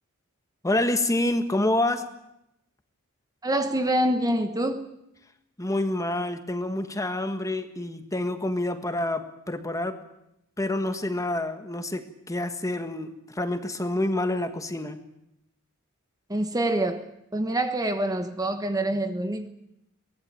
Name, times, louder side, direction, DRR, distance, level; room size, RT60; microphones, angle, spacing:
voice 1, 0.6-2.0 5.6-10.0 10.6-15.0, left 1 dB, 15° left, 1.5 m, -27 dB
voice 2, 3.4-4.9 16.3-17.1 17.3-19.5, right 1 dB, 15° right, 1.3 m, -26 dB
23.5 x 18.5 x 8.9 m
head